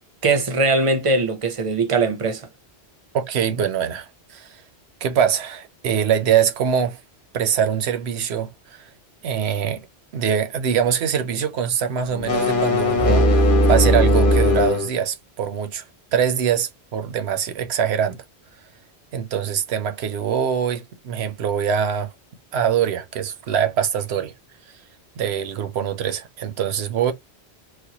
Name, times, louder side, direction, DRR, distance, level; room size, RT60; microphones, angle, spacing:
voice 1, 0.2-2.5, right 3 dB, 40° right, 0.6 m, -20 dB
voice 2, 3.1-4.6 5.0-7.0 7.3-8.9 9.2-9.9 10.1-15.8 16.1-18.2 19.1-22.1 22.5-24.3 25.2-27.1, right 8 dB, 75° right, 0.9 m, -23 dB
sound 1, 12.1-14.9, left 1 dB, 50° left, 1.1 m, -18 dB
4.3 x 2.2 x 2.8 m
omnidirectional pair, 1.1 m